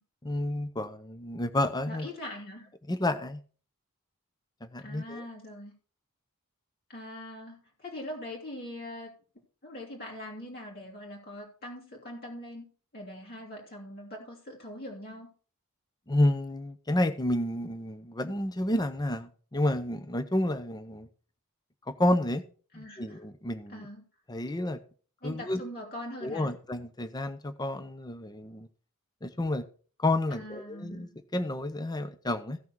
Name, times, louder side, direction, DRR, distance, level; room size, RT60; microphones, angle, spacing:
voice 1, 0.2-2.1 2.9-3.4 4.6-5.2 16.1-21.1 21.9-22.4 22.7-23.9 24.3-24.8 25.2-25.6 26.2-28.7 29.2-29.6 30.0-32.6, left 1 dB, 20° left, 11 dB, 0.6 m, -30 dB
voice 2, 1.9-2.7 4.8-5.7 6.9-9.1 9.6-12.7 12.9-15.3 22.7-23.2 23.7-24.0 25.2-26.5 30.3-31.2, left 1 dB, 45° left, -2 dB, 2.7 m, -42 dB
15.5 x 6.0 x 4.6 m, 0.41 s
head